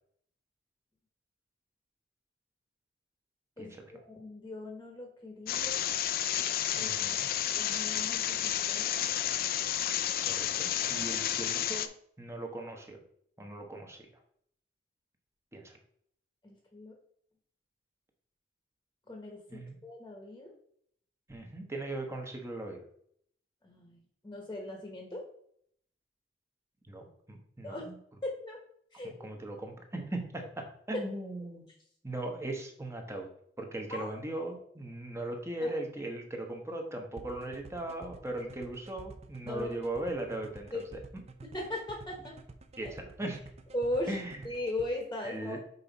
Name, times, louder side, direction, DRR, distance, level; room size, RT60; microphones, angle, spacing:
voice 1, 3.6-6.0 6.8-6.9 7.6-9.3 16.4-16.9 19.1-20.5 23.6-24.0 24.2-25.2 27.6-27.9 28.2-28.6 28.9-29.1 33.9-34.1 35.6-35.7 39.4-39.7 40.7-40.8 41.4-42.3 42.8-42.9 43.7-44.2 44.4-45.6, left 1 dB, 20° left, 1 dB, 1.1 m, -38 dB
sound 1, 5.5-11.9, left 10 dB, 55° left, 0.4 m, -31 dB
voice 2, 6.7-7.3 10.2-11.9 12.2-13.0 13.4-14.1 15.5-15.8 19.5-19.8 21.3-22.8 26.8-28.0 29.0-31.7 32.0-33.3 33.6-40.8 42.8-43.4 44.1-44.4 45.2-45.6, right 1 dB, 15° right, 3 dB, 1.0 m, -39 dB
sound 2, 37.2-44.9, right 3 dB, 35° right, 0.5 m, -49 dB
5.6 x 4.6 x 4.0 m, 0.66 s
head